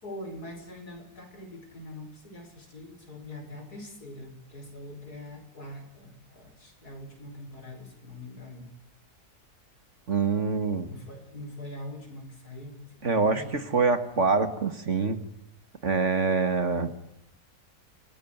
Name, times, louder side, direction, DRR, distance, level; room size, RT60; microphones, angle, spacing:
voice 1, 0.0-8.7 10.9-13.5, left 1 dB, 70° left, 5 dB, 5.8 m, -43 dB
voice 2, 10.1-10.9 13.0-15.2 15.8-16.9, right 4 dB, 50° right, 10 dB, 2.1 m, -25 dB
28.0 x 16.0 x 9.2 m, 0.76 s
omnidirectional pair, 1.7 m